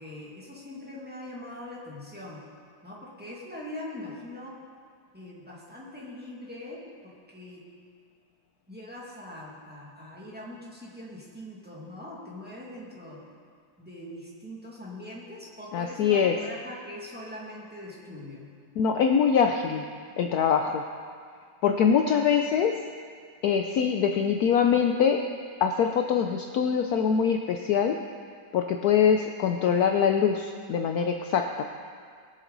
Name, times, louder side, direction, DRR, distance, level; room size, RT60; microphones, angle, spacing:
voice 1, 0.0-2.4 2.8-4.6 5.1-7.6 8.7-13.2 13.8-18.5, left 1 dB, 5° right, -5 dB, 1.9 m, -42 dB
voice 2, 15.7-16.3 18.8-19.8 20.2-20.8 21.6-22.8 23.4-25.2 25.6-28.0 28.5-31.6, left 7 dB, 70° left, 4 dB, 1.0 m, -23 dB
21.0 x 7.4 x 3.9 m, 2.1 s
omnidirectional pair, 1.9 m